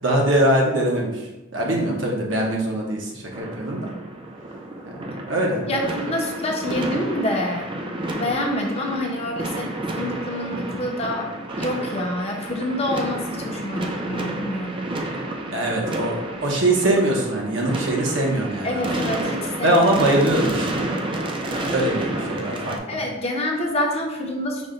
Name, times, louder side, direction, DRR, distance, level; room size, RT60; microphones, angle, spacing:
voice 1, 0.0-1.2 1.5-3.9 4.9-5.6 15.5-18.9 19.6-20.9 21.7-23.0, right 1 dB, 65° right, -1 dB, 0.8 m, -22 dB
sound 1, 3.3-22.8, right 1 dB, 25° right, 0.4 m, -30 dB
voice 2, 5.6-7.6 8.1-11.3 11.6-14.9 18.6-20.2 22.9-24.7, left 1 dB, 30° left, 1 dB, 0.7 m, -27 dB
5.2 x 2.2 x 3.8 m, 1.0 s
head